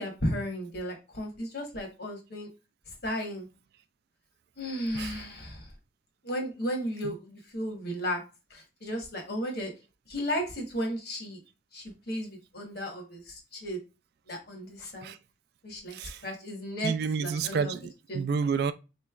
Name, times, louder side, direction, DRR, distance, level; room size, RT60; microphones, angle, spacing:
voice 1, 0.0-2.5 3.0-3.5 4.6-5.7 6.2-8.2 8.5-9.7 10.1-11.4 11.7-13.8 14.3-15.1 15.6-16.0 16.2-16.9 17.2-17.7 18.1-18.2, equal, 55° left, 1.1 m, -34 dB
voice 2, 16.8-18.7, right 5 dB, 55° right, 0.3 m, -30 dB
3.9 x 3.1 x 2.3 m
head